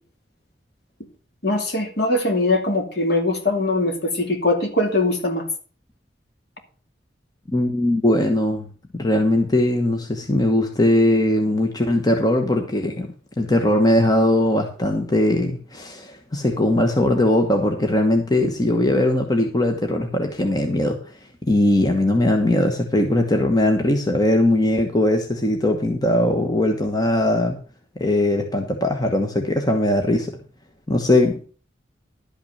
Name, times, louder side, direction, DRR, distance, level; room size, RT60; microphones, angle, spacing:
voice 1, 1.4-5.4, left 2 dB, 60° left, 3 dB, 2.6 m, -21 dB
voice 2, 7.5-8.7 8.9-21.0 21.5-27.6 28.0-30.4 30.9-31.5, left 1 dB, 20° left, 3 dB, 1.2 m, -20 dB
12.0 x 5.9 x 6.6 m, 0.39 s
head